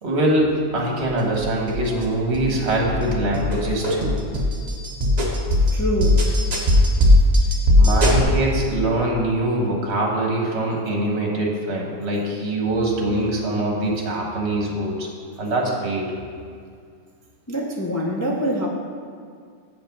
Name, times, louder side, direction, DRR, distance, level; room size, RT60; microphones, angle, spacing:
voice 1, 0.0-4.2 7.8-15.1 15.4-16.1, right 1 dB, 50° right, -1 dB, 1.6 m, -23 dB
sound 1, 1.3-2.0 2.3-2.5 2.8-8.2, left 1 dB, 35° right, 1.0 m, -18 dB
voice 2, 5.7-6.3 17.5-18.7, equal, 20° left, -2 dB, 0.4 m, -24 dB
7.7 x 5.3 x 5.3 m, 2.2 s
omnidirectional pair, 1.5 m